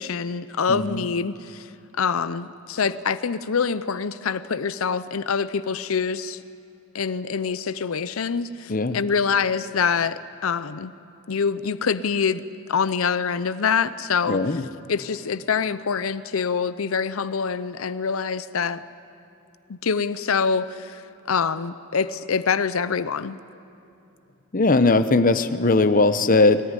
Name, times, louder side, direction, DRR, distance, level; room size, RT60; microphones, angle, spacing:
voice 1, 0.0-1.7 2.0-6.4 6.9-10.9 11.3-12.4 12.7-14.6 14.9-18.8 19.7-21.0 21.3-23.4, left 6 dB, 80° left, 14 dB, 0.6 m, -25 dB
voice 2, 0.7-1.0 8.7-9.0 14.3-14.6 24.5-26.6, left 3 dB, 40° left, 10 dB, 0.9 m, -19 dB
22.5 x 19.0 x 9.8 m, 2.8 s
head